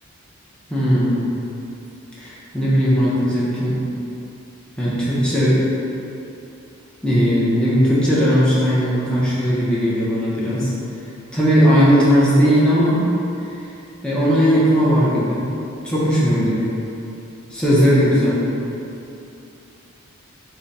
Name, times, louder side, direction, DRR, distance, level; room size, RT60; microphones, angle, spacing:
voice 1, 0.7-1.2 2.2-3.8 4.8-5.6 7.0-10.7 11.3-13.0 14.0-15.5 15.8-16.7 17.5-18.4, equal, 5° left, -9 dB, 0.7 m, -17 dB
3.7 x 2.2 x 4.1 m, 2.8 s
head